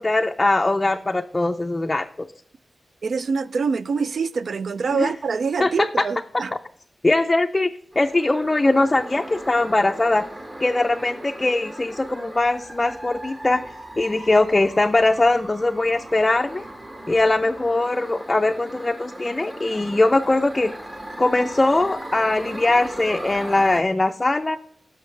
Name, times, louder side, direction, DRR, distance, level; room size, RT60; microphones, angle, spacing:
voice 1, 0.0-2.3 4.9-5.1 5.6-5.7 7.0-7.7 8.0-10.2 10.6-13.6 14.0-16.7 17.1-20.7 21.2-24.6, left 2 dB, 25° left, 0.4 m, -21 dB
voice 2, 3.0-6.5, right 5 dB, 70° right, 0.3 m, -25 dB
sound 1, 7.9-23.8, right 1 dB, 30° right, 1.4 m, -38 dB
10.5 x 6.4 x 3.2 m
wide cardioid pair, 95°, 0 cm